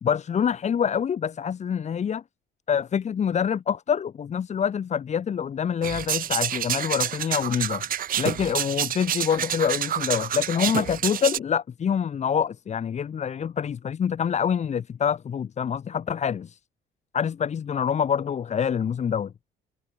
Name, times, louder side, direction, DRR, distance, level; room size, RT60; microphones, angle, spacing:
voice 1, 0.0-2.2 2.7-7.8 8.2-16.6 17.1-19.3, left 7 dB, 45° left, 3.3 m, -26 dB
sound 1, 5.8-11.4, right 10 dB, 55° right, 5.0 m, -28 dB
cardioid pair, 110°, 17 cm